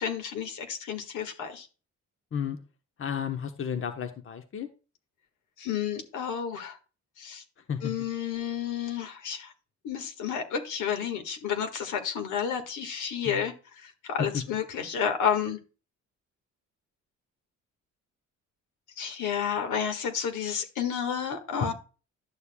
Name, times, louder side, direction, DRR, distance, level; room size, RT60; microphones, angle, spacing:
voice 1, 0.0-1.7 5.6-6.8 7.2-7.4 7.8-9.5 9.8-15.6 19.0-21.7, left 7 dB, 80° left, 6 dB, 1.7 m, -31 dB
voice 2, 3.0-4.7 7.7-7.9 13.2-13.5 14.2-14.4, left 8 dB, 45° left, 7 dB, 1.0 m, -32 dB
11.5 x 6.7 x 2.3 m, 0.32 s
cardioid pair, 90°, 30 cm